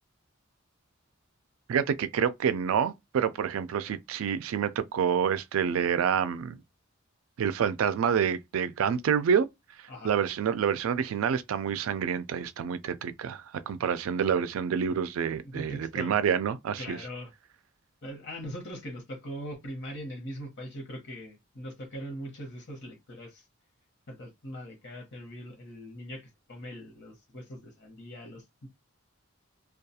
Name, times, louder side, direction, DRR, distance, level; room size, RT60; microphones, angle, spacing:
voice 1, 1.7-6.6 7.4-9.5 9.8-17.0, right 7 dB, 90° right, 0.3 m, -28 dB
voice 2, 15.4-16.1 16.8-17.3 18.0-23.4 24.1-28.7, equal, 60° left, 0.9 m, -41 dB
2.3 x 2.3 x 2.7 m
head